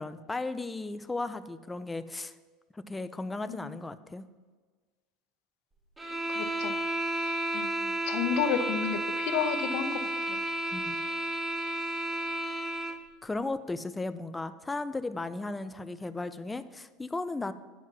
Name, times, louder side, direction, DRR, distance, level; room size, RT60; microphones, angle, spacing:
voice 1, 0.0-2.3 2.7-4.3 10.7-11.0 13.2-17.5, left 2 dB, 10° left, 12 dB, 0.4 m, -35 dB
sound 1, 6.0-13.0, right 1 dB, 10° right, 0.7 m, -32 dB
voice 2, 6.3-6.7 7.2-10.0 10.3-10.4, left 8 dB, 60° left, 9 dB, 0.8 m, -32 dB
9.2 x 4.6 x 5.9 m, 1.4 s
supercardioid pair, 140°, 0 cm